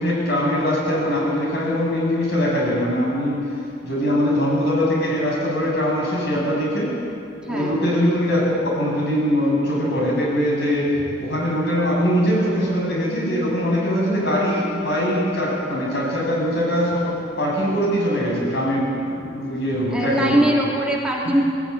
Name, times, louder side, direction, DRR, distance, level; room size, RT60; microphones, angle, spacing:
voice 1, 0.0-3.4 3.8-6.9 7.5-10.9 11.2-20.4 21.2-21.3, equal, 65° left, -3 dB, 7.7 m, -22 dB
voice 2, 7.5-7.8 19.9-21.4, right 1 dB, 5° right, -3 dB, 2.7 m, -21 dB
20.0 x 16.5 x 10.0 m, 2.5 s
head